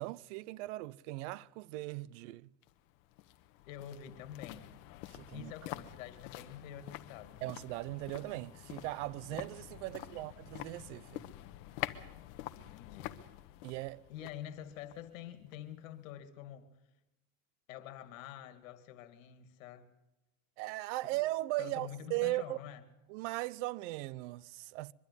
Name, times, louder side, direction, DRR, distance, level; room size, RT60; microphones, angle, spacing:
voice 1, 0.0-2.5 5.1-5.5 7.4-11.3 13.6-14.0 20.6-22.6 23.1-24.9, right 19 dB, 60° right, 0.7 m, -38 dB
sound 1, 2.6-15.8 16.1-16.2, left 15 dB, 55° left, 1.2 m, -47 dB
voice 2, 3.7-4.7 5.3-7.4 9.9-10.2 12.5-13.2 14.1-16.8 17.7-19.9 21.0-21.2 21.6-22.8, left 10 dB, 75° left, 2.3 m, -47 dB
23.0 x 12.5 x 9.7 m
supercardioid pair, 145°, 40 cm